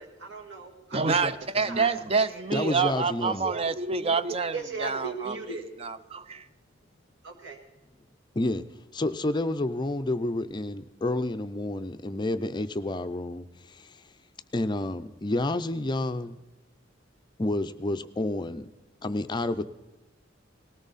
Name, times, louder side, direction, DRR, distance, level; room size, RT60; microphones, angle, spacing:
voice 1, 0.0-1.1 1.7-2.0 2.3-2.7 4.5-5.6 7.2-7.6, right 4 dB, 65° right, 2 dB, 2.2 m, -37 dB
voice 2, 0.9-5.4 5.8-6.5, right 4 dB, 30° right, 13 dB, 0.5 m, -27 dB
voice 3, 2.5-3.5 8.4-8.6 8.9-14.0 14.5-16.4 17.4-18.7 19.0-19.6, left 2 dB, 25° left, 9 dB, 0.5 m, -29 dB
19.0 x 16.5 x 4.1 m, 1.1 s
head